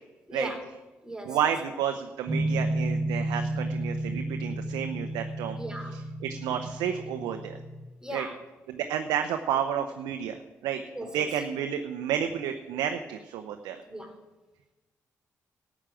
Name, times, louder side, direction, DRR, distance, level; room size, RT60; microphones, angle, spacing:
voice 1, 0.3-0.6 1.0-1.5 5.5-6.0 8.0-8.4 10.9-11.4 13.9-14.2, equal, 10° right, 4 dB, 2.9 m, -38 dB
voice 2, 1.3-5.6 6.2-7.6 8.1-8.3 8.7-10.8 11.1-13.8, right 9 dB, 80° right, 6 dB, 0.8 m, -31 dB
sound 1, 2.3-7.8, right 1 dB, 50° right, 2.2 m, -32 dB
13.5 x 7.3 x 8.9 m, 1.1 s
supercardioid pair, 50°, 7 cm